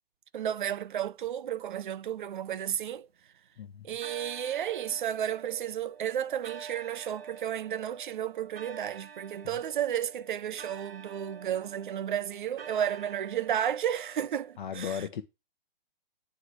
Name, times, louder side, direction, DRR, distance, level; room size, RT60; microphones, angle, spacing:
voice 1, 0.3-3.1 3.8-15.0, right 10 dB, 55° right, 0.6 m, -32 dB
sound 1, 2.0-3.4 4.0-14.6, right 6 dB, 80° right, 1.1 m, -48 dB
voice 2, 14.6-15.2, left 8 dB, 55° left, 0.9 m, -36 dB
9.6 x 3.3 x 6.5 m
hypercardioid pair, 155°, 30 cm